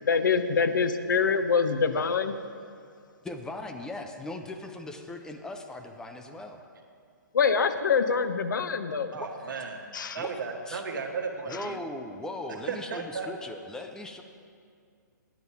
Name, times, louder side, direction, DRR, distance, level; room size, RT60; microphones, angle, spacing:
voice 1, 0.1-2.3 7.3-9.1 9.9-10.2, left 5 dB, 75° left, 9 dB, 0.8 m, -25 dB
voice 2, 3.2-6.6 9.2-9.6 10.2-10.8 11.5-14.2, left 2 dB, 5° left, 5 dB, 0.5 m, -39 dB
voice 3, 9.1-11.8 12.7-13.3, right 5 dB, 75° right, 3 dB, 1.4 m, -35 dB
9.5 x 8.0 x 5.6 m, 2.2 s
hypercardioid pair, 140°, 11 cm